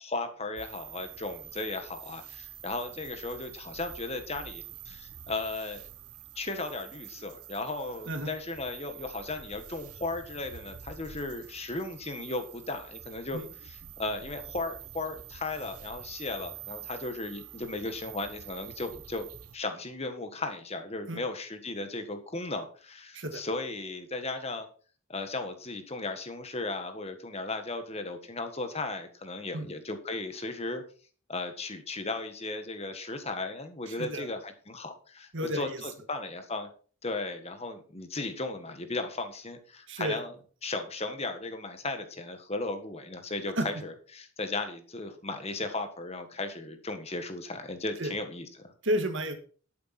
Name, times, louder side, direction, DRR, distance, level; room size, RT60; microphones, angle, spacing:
voice 1, 0.0-5.9 6.3-19.3 19.5-24.7 25.1-30.8 31.3-36.7 37.0-40.3 40.6-48.7, left 2 dB, 25° left, 7 dB, 1.5 m, -36 dB
sound 1, 0.6-19.6, right 10 dB, 80° right, 1.1 m, -47 dB
voice 2, 33.9-34.3 35.3-35.8 39.9-40.2 43.6-43.7 48.0-48.1 48.8-49.3, equal, 55° right, 7 dB, 1.9 m, -31 dB
12.0 x 9.1 x 4.3 m, 0.40 s
head